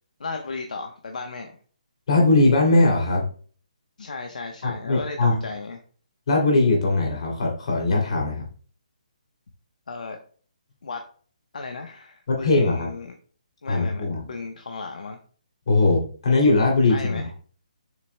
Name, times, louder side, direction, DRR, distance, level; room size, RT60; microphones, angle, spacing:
voice 1, 0.2-1.5 4.0-5.8 9.9-10.2 10.8-11.1 11.5-13.1 13.6-15.2 16.9-17.3, left 4 dB, 75° left, 4 dB, 1.0 m, -35 dB
voice 2, 2.1-3.2 4.6-5.4 6.3-8.5 12.3-12.9 13.7-14.3 15.7-17.2, left 2 dB, 50° left, 1 dB, 2.8 m, -20 dB
7.4 x 6.0 x 2.2 m, 0.42 s
hypercardioid pair, 170°, 4 cm